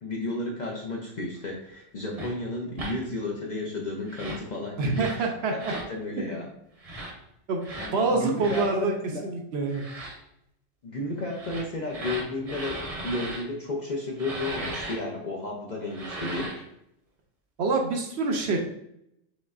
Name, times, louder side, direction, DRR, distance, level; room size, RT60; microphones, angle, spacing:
voice 1, 0.0-5.6 5.9-6.5 7.8-9.2 10.8-16.5, left 2 dB, 50° left, -2 dB, 0.5 m, -33 dB
sound 1, 2.1-2.3 2.7-2.9 4.0-4.5 4.9-5.2 5.6-5.9 6.8-7.1 7.6-7.9 8.4-8.7 9.7-10.1 11.3-13.4 14.2-15.0 15.8-16.6, right 2 dB, 35° right, 0.7 m, -37 dB
voice 2, 4.8-5.7 6.2-6.4 7.5-8.9 9.2-9.8 17.6-18.6, right 3 dB, 65° right, 2 dB, 0.8 m, -26 dB
5.1 x 3.1 x 2.4 m, 0.77 s
omnidirectional pair, 1.3 m